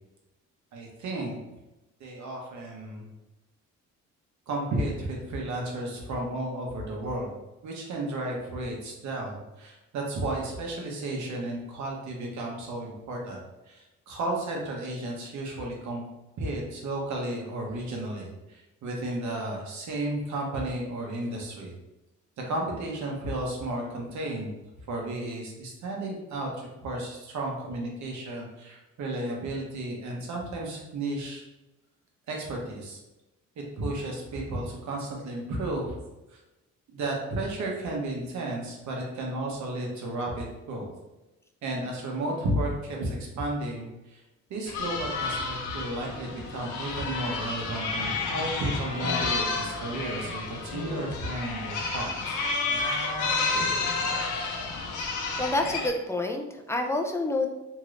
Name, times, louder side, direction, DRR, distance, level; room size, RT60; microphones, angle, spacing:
voice 1, 0.7-1.4 2.0-3.1 4.5-7.3 7.6-16.0 16.4-21.7 22.4-24.5 24.9-31.4 32.3-33.0 33.6-36.0 36.3-36.4 36.9-40.9 41.6-44.2 44.5-52.4, right 1 dB, 70° right, -1 dB, 1.0 m, -33 dB
sound 1, 44.7-55.9, left 3 dB, 80° left, 0.6 m, -30 dB
voice 2, 55.1-57.5, left 2 dB, 10° left, 3 dB, 0.3 m, -28 dB
3.1 x 2.9 x 2.5 m, 1.0 s
cardioid pair, 90°, 30 cm